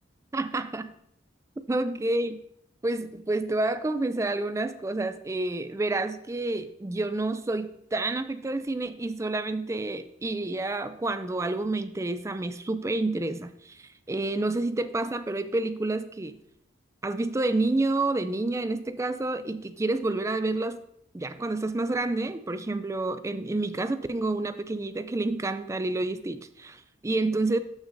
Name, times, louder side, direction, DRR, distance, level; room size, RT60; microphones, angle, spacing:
voice 1, 0.3-0.9 1.7-2.4 2.8-16.4 17.0-20.8 21.1-27.6, right 2 dB, 15° right, 12 dB, 0.3 m, -29 dB
13.0 x 6.0 x 2.6 m, 0.75 s
head